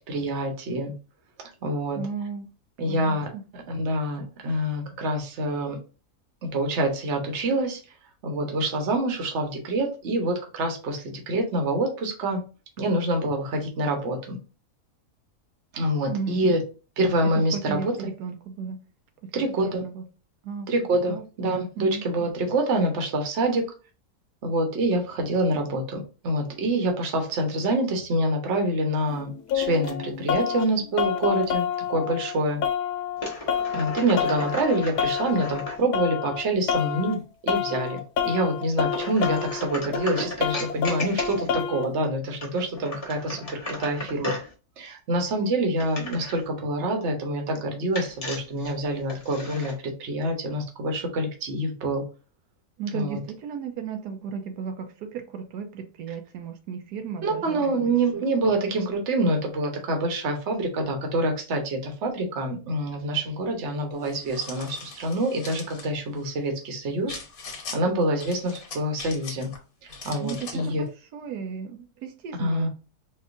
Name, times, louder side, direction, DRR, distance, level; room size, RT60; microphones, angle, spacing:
voice 1, 0.1-0.9 1.6-2.0 2.8-5.8 6.4-7.8 8.2-12.4 12.8-14.4 15.7-16.6 17.0-17.9 18.6-18.7 19.3-19.8 20.7-23.6 24.4-32.6 33.7-44.4 44.8-52.0 52.9-53.2 57.2-67.2 67.7-69.5 69.8-70.8 72.4-72.7, right 1 dB, 50° right, 3 dB, 1.2 m, -26 dB
voice 2, 1.9-2.5 2.8-3.4 16.1-16.6 17.3-18.8 19.2-20.0 20.4-20.7 21.1-21.5 21.8-22.0 52.8-58.2 70.2-72.7, right 6 dB, 85° right, 5 dB, 1.2 m, -35 dB
sound 1, 29.1-30.6 31.0-32.3 32.6-36.4 36.7-37.1 37.5-41.8, left 8 dB, 90° left, 1.2 m, -28 dB
sound 2, 33.2-35.8 38.9-41.7 42.3-44.5 45.8-46.4 47.9-49.8, left 1 dB, 25° left, 0.9 m, -35 dB
sound 3, 64.0-65.9 67.1-67.8 68.2-69.6 69.9-70.7, left 4 dB, 65° left, 1.4 m, -40 dB
4.2 x 2.5 x 2.5 m, 0.33 s
omnidirectional pair, 1.7 m